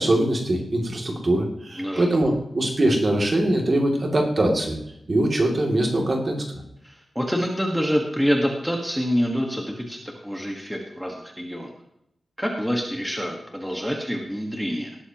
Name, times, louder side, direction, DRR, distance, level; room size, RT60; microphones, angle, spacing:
voice 1, 0.0-4.8 5.1-6.4, right 1 dB, 35° right, 1 dB, 2.6 m, -22 dB
voice 2, 6.8-11.7 12.4-14.9, equal, ahead, 0 dB, 1.5 m, -26 dB
19.0 x 12.5 x 3.0 m, 0.79 s
wide cardioid pair, 160°, 0 cm